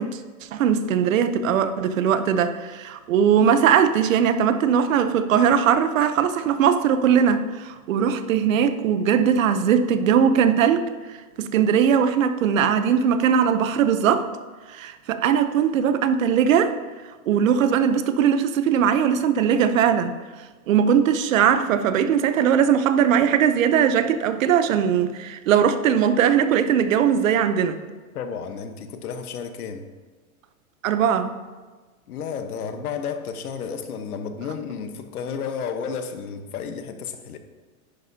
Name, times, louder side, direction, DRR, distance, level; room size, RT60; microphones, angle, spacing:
voice 1, 0.0-10.8 11.4-14.3 14.7-16.7 17.3-20.2 20.7-27.8 30.8-31.3, right 8 dB, 65° right, 11 dB, 0.8 m, -20 dB
voice 2, 28.1-29.9 32.1-37.4, left 6 dB, 85° left, 8 dB, 1.2 m, -32 dB
10.5 x 9.9 x 2.8 m, 1.3 s
supercardioid pair, 170°, 43 cm